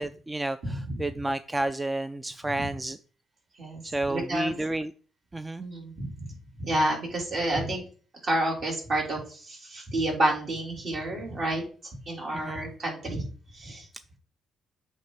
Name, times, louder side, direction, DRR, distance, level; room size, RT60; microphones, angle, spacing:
voice 1, 0.0-3.0 3.8-4.9 5.3-5.6 12.3-12.6, right 2 dB, 15° right, 12 dB, 0.3 m, -31 dB
voice 2, 0.6-1.0 3.6-3.8 4.1-4.5 5.6-6.1 6.6-7.8 8.2-11.6 12.1-13.2 13.5-13.9, right 1 dB, 50° right, -1 dB, 3.4 m, -29 dB
8.3 x 3.3 x 4.7 m, 0.40 s
cardioid pair, 90°, 0 cm